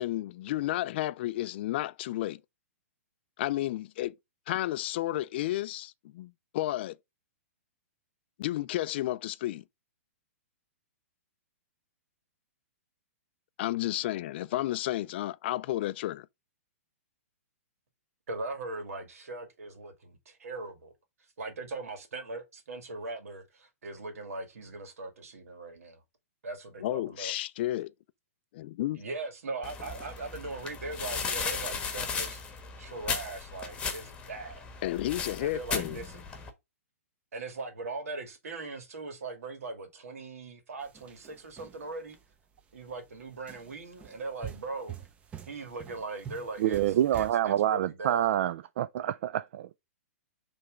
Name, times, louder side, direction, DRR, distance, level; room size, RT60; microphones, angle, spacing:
voice 1, 0.0-2.4 3.4-4.1 4.5-7.0 8.4-9.6 13.6-16.3 26.8-27.9 28.5-29.0 34.8-36.0, left 15 dB, 45° left, 0.3 m, -32 dB
voice 2, 18.3-20.9 21.4-26.0 26.4-27.3 28.9-32.4 32.8-34.6 35.4-36.2 37.3-42.2 42.7-44.9 45.5-48.3, right 3 dB, 80° right, 2.2 m, -40 dB
sound 1, 29.6-36.5, left 5 dB, 15° left, 1.2 m, -36 dB
sound 2, 40.8-42.2 42.7-43.0 43.5-47.3, right 9 dB, 15° right, 0.7 m, -46 dB
voice 3, 46.6-49.8, right 11 dB, 55° right, 0.3 m, -27 dB
5.7 x 3.4 x 5.0 m
hypercardioid pair, 145°, 8 cm